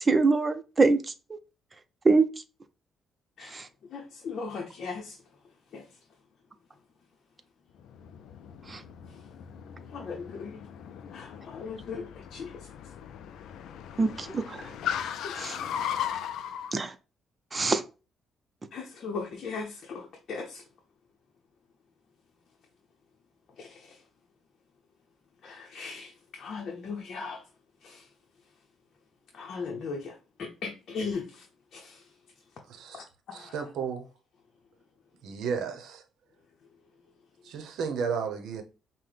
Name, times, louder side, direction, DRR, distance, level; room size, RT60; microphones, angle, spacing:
voice 1, 0.1-1.0 2.0-2.2 3.5-3.7 8.7-8.8 14.0-14.6 15.4-15.6 16.7-16.9 17.5-17.8, right 3 dB, 30° right, 0.6 m, -23 dB
voice 2, 3.9-5.2 5.7-5.8 9.9-10.6 11.1-12.5 15.2-15.3 18.7-20.6 23.6-23.8 25.4-26.1 26.4-27.4 27.8-28.0 29.3-30.1 30.4-31.4 31.7-32.0 32.9-33.5, left 4 dB, 60° left, 0.7 m, -38 dB
Car, 7.8-16.7, left 9 dB, 80° left, 0.3 m, -37 dB
voice 3, 32.7-33.1 33.3-34.1 35.2-36.0 37.4-38.6, right 6 dB, 80° right, 0.7 m, -33 dB
5.6 x 2.1 x 3.2 m
cardioid pair, 90°, 0 cm